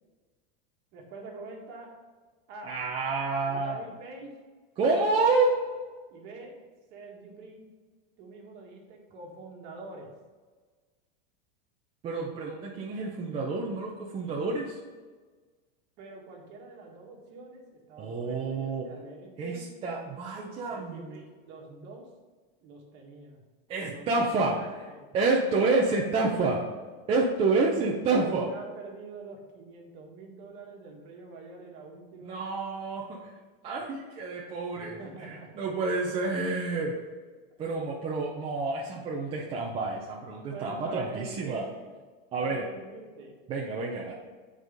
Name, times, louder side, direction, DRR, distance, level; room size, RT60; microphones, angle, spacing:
voice 1, 0.9-1.9 2.5-2.7 3.4-4.3 6.1-6.5 6.9-7.6 8.2-10.1 16.0-19.6 20.5-22.1 22.6-23.4 23.8-25.1 25.6-26.0 28.0-32.4 34.7-35.5 40.5-41.9 42.4-43.4, right 3 dB, 40° right, 0 dB, 1.7 m, -45 dB
voice 2, 2.7-3.8 4.8-5.6 12.0-14.8 18.0-18.9 19.4-21.2 23.7-24.6 25.1-26.6 27.1-28.5 32.2-33.3 33.6-37.0 37.6-41.7 42.3-42.7 43.5-44.1, right 3 dB, 20° right, -3 dB, 0.6 m, -28 dB
7.8 x 4.8 x 5.1 m, 1.4 s
supercardioid pair, 170°, 29 cm